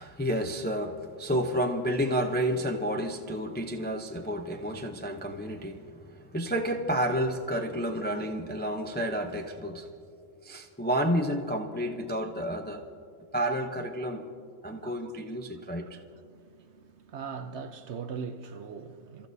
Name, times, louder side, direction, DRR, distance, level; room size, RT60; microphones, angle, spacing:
voice 1, 0.0-9.9 10.4-12.8 13.3-14.3 14.6-16.0, equal, 15° left, 0.4 m, -30 dB
voice 2, 14.7-15.1 15.8-19.3, right 6 dB, 60° right, 0.8 m, -41 dB
29.0 x 14.5 x 2.7 m
omnidirectional pair, 1.5 m